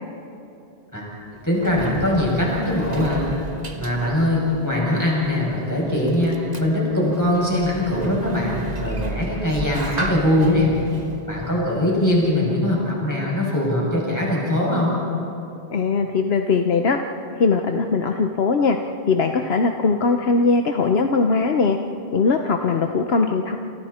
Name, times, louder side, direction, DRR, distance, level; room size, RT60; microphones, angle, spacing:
Sliding door, 1.1-12.5, right 2 dB, 40° right, 1.6 m, -34 dB
voice 1, 1.4-3.3 3.7-10.7 11.3-15.0, left 1 dB, 15° left, -4 dB, 7.3 m, -21 dB
voice 2, 15.7-17.0 17.4-18.8 19.1-21.8 22.1-23.6, left 4 dB, 70° left, 5 dB, 1.2 m, -20 dB
28.5 x 28.5 x 4.4 m, 2.6 s
omnidirectional pair, 1.1 m